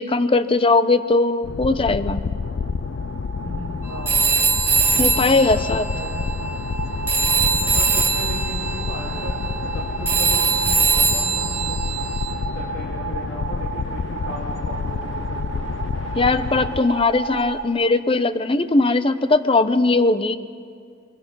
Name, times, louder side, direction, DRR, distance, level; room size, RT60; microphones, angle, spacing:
voice 1, 0.0-2.2 5.0-5.9 16.2-20.4, left 3 dB, 30° left, 12 dB, 0.7 m, -19 dB
sound 1, 1.4-16.8, left 5 dB, 85° left, 0.4 m, -29 dB
sound 2, 1.7-17.6, right 5 dB, 75° right, 2.0 m, -33 dB
voice 2, 3.4-4.2 5.1-6.3 7.5-11.8 12.5-15.6, equal, 60° left, -3 dB, 2.5 m, -36 dB
Telephone, 4.0-6.8 7.1-12.3, right 5 dB, 10° right, 2.1 m, -22 dB
23.5 x 23.0 x 5.4 m, 2.2 s
head